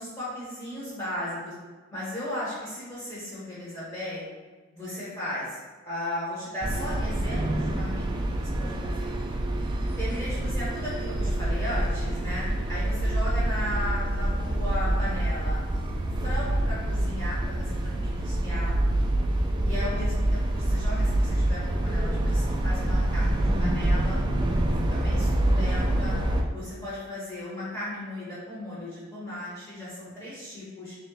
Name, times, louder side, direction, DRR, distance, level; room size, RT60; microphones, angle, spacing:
voice 1, 0.0-1.5 1.9-4.2 4.7-8.0 8.3-9.1 10.0-15.6 16.0-19.0 19.6-24.2 24.7-26.1 26.5-31.0, left 1 dB, 15° left, -9 dB, 1.1 m, -36 dB
sound 1, 6.6-26.4, right 1 dB, 20° right, 0.3 m, -26 dB
3.6 x 2.9 x 3.8 m, 1.3 s
head